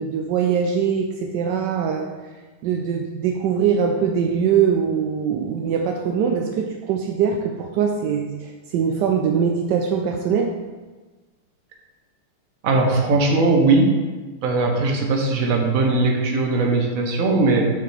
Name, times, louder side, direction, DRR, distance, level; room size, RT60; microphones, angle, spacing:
voice 1, 0.0-2.1 2.6-10.5, right 7 dB, 80° right, 3 dB, 0.9 m, -22 dB
voice 2, 12.6-14.0 14.4-17.7, right 3 dB, 55° right, 2 dB, 1.0 m, -19 dB
5.8 x 4.7 x 4.8 m, 1.3 s
omnidirectional pair, 2.3 m